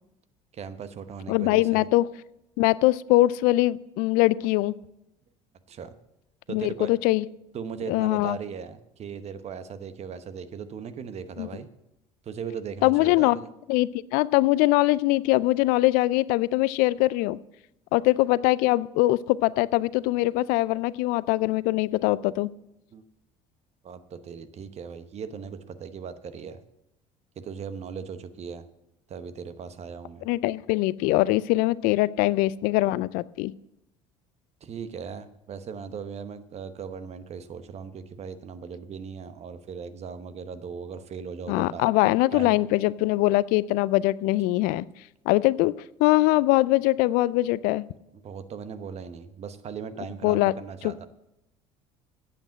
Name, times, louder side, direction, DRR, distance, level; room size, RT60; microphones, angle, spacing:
voice 1, 0.5-1.9 5.7-5.9 6.5-6.9 7.5-11.7 12.2-13.5 22.9-23.0 23.8-26.6 27.4-28.6 29.1-30.3 34.6-41.8 42.3-42.6 48.1-51.1, right 6 dB, 45° right, 11 dB, 1.0 m, -38 dB
voice 2, 1.3-2.0 2.6-4.7 6.5-7.3 7.9-8.4 11.4-11.5 12.8-13.4 13.7-17.4 17.9-22.5 30.3-33.5 41.5-44.9 45.3-45.7 46.0-47.8 50.2-50.5 50.8-51.1, left 18 dB, 65° left, 20 dB, 0.4 m, -22 dB
8.9 x 7.9 x 7.4 m, 0.87 s
hypercardioid pair, 70°, 16 cm